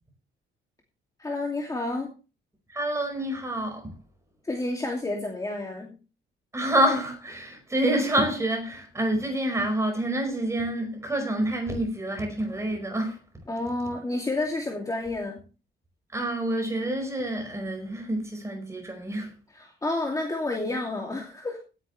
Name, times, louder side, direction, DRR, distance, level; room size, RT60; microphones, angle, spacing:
voice 1, 1.2-2.1 4.4-5.9 13.5-15.4 19.5-21.6, left 2 dB, 15° left, 2.6 m, -30 dB
voice 2, 2.7-3.9 6.5-13.2 16.1-19.3, right 1 dB, 15° right, 5.3 m, -27 dB
18.0 x 10.0 x 3.4 m
cardioid pair, 165°, 21 cm